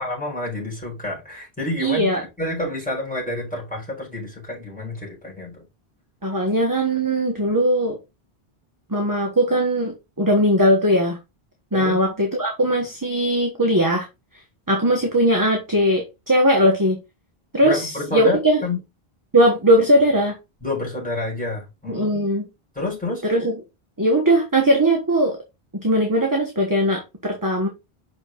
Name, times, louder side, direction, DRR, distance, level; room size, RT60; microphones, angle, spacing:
voice 1, 0.0-2.1 2.4-5.6 11.7-12.0 17.6-18.8 20.6-22.2 22.7-23.2, left 2 dB, 10° left, 4.8 m, -29 dB
voice 2, 1.8-2.2 6.2-8.0 8.9-11.2 11.7-14.1 14.7-17.0 17.5-18.6 19.3-20.4 21.9-22.5 23.2-23.5 24.0-25.4 25.7-27.7, equal, 20° right, 1.3 m, -19 dB
6.3 x 5.2 x 3.8 m
omnidirectional pair, 1.0 m